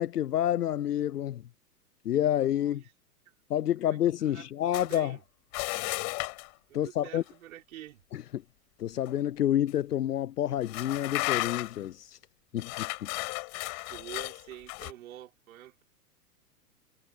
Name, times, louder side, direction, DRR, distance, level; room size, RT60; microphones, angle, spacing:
voice 1, 0.0-1.4 2.0-2.8 3.5-5.2 6.7-7.2 8.1-8.4 8.8-12.2 12.5-13.1, left 11 dB, 75° left, 0.7 m, -28 dB
voice 2, 2.6-2.9 3.6-4.5 4.8-5.2 6.7-8.0 13.8-15.8, right 12 dB, 60° right, 5.1 m, -47 dB
sound 1, 4.7-5.0 5.5-6.5 9.1-9.2 9.7-9.8 10.6-11.9 12.6-14.9, left 40 dB or more, 40° left, 4.6 m, -34 dB
figure-of-eight pair, 105°, 47 cm